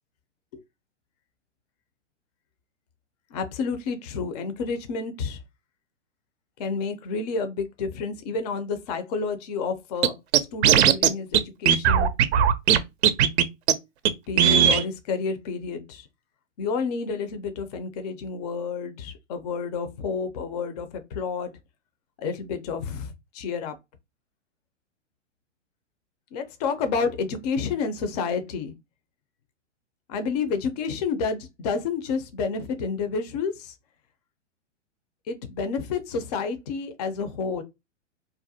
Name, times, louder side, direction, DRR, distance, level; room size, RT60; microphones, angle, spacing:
voice 1, 3.3-5.4 6.6-12.1 14.3-16.1 16.6-21.5 22.2-23.8 26.3-28.7 30.1-33.7 35.3-37.6, left 5 dB, 35° left, 0.4 m, -30 dB
Scratching (performance technique), 10.0-10.1 10.3-11.1 11.3-11.4 11.7-12.8 13.0-13.4 13.7-13.8 14.0-14.1 14.4-14.8, right 9 dB, 60° right, 0.5 m, -17 dB
2.4 x 2.1 x 2.7 m
hypercardioid pair, 125°, 37 cm